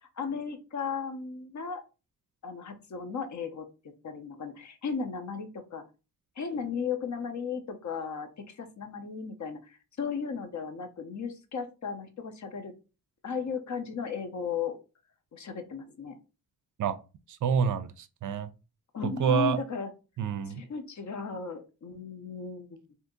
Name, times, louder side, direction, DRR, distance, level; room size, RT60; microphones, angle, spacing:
voice 1, 0.2-1.8 2.4-3.6 4.0-5.8 6.4-12.7 13.2-14.8 15.3-16.2 18.9-19.9 20.5-22.9, left 5 dB, 50° left, 0.7 m, -35 dB
voice 2, 17.3-18.5 19.0-19.6 20.2-20.6, right 7 dB, 55° right, 0.4 m, -28 dB
2.8 x 2.6 x 3.7 m
cardioid pair, 100°, 37 cm